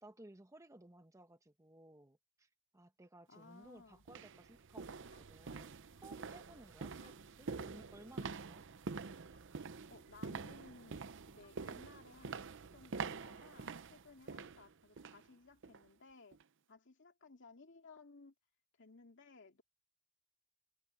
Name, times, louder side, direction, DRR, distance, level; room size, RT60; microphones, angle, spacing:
voice 1, 0.0-8.6, right 1 dB, 15° right, 1.2 m, -59 dB
voice 2, 3.3-4.0 9.9-16.4 16.7-18.3 18.8-19.6, left 3 dB, 60° left, 2.4 m, -59 dB
sound 1, 3.3-3.4 4.0-15.3 15.6-15.9 16.3-16.4, right 4 dB, 60° right, 0.7 m, -47 dB
sound 2, 5.1-6.2 7.0-7.3 8.2-8.4 9.3-9.6 10.5-10.7 11.4-11.7 12.2-12.4 13.3-13.6, left 6 dB, 30° left, 2.4 m, -72 dB
head